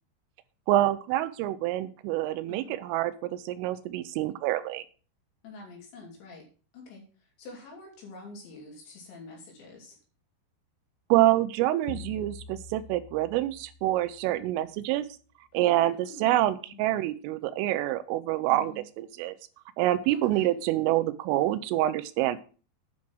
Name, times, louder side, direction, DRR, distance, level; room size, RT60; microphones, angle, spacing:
voice 1, 0.7-4.8 11.1-15.1 15.5-19.4 19.8-22.4, right 15 dB, 85° right, 13 dB, 3.3 m, -26 dB
voice 2, 5.4-6.4 6.7-10.0 15.5-16.9 18.5-18.9 20.1-20.5, left 2 dB, 65° left, 0 dB, 5.1 m, -47 dB
sound 1, 11.9-14.6, left 5 dB, 85° left, 3.5 m, -46 dB
10.0 x 6.1 x 6.1 m, 0.38 s
omnidirectional pair, 5.7 m